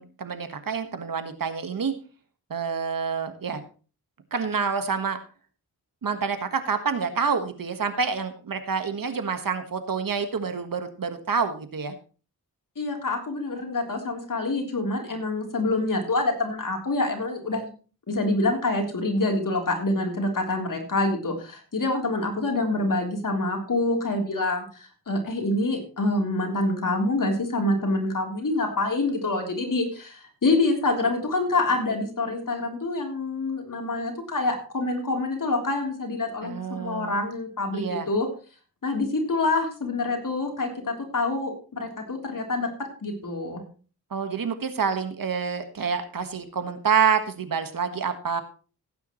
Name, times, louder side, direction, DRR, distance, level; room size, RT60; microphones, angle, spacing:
voice 1, 0.0-1.9 2.5-3.6 4.3-5.2 6.0-11.9 36.4-37.1 37.7-38.1 44.1-48.4, right 6 dB, 60° right, 9 dB, 1.5 m, -27 dB
voice 2, 12.8-17.7 18.1-38.3 38.8-42.7 43.0-43.6, left 2 dB, 55° left, 2 dB, 3.5 m, -26 dB
16.5 x 9.3 x 3.1 m, 0.37 s
cardioid pair, 70°, 37 cm